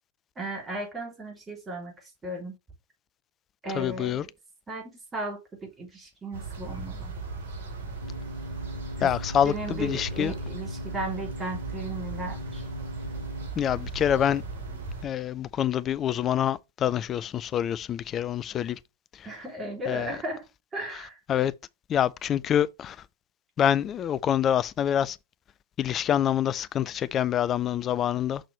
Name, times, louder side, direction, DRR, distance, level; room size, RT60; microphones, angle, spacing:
voice 1, 0.4-2.5 3.6-4.3 4.7-7.2 9.0-9.1 9.4-12.6 19.2-20.5 20.7-21.2, right 2 dB, 20° right, 3.0 m, -36 dB
voice 2, 3.8-4.2 9.0-10.3 13.6-14.4 15.0-18.8 19.9-20.1 21.3-21.5 21.9-23.0 23.6-25.2 25.8-28.4, left 10 dB, 30° left, 0.4 m, -26 dB
sound 1, 6.3-15.1, right 3 dB, 55° right, 2.9 m, -37 dB
sound 2, 8.0-13.5, left 1 dB, 85° left, 0.8 m, -39 dB
6.3 x 5.9 x 3.2 m
figure-of-eight pair, 90°, 0 cm